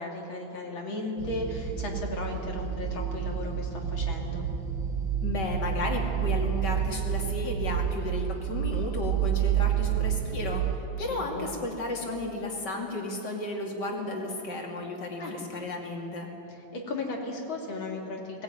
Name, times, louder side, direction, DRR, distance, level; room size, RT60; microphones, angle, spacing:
voice 1, 0.0-4.4 11.0-11.6 15.2-15.4 16.7-18.4, left 2 dB, 80° left, 0 dB, 3.5 m, -35 dB
sound 1, 1.2-10.8, right 9 dB, 65° right, 1.8 m, -29 dB
voice 2, 5.2-16.3, left 2 dB, 60° left, 1 dB, 3.2 m, -33 dB
19.0 x 17.5 x 9.3 m, 3.0 s
omnidirectional pair, 2.2 m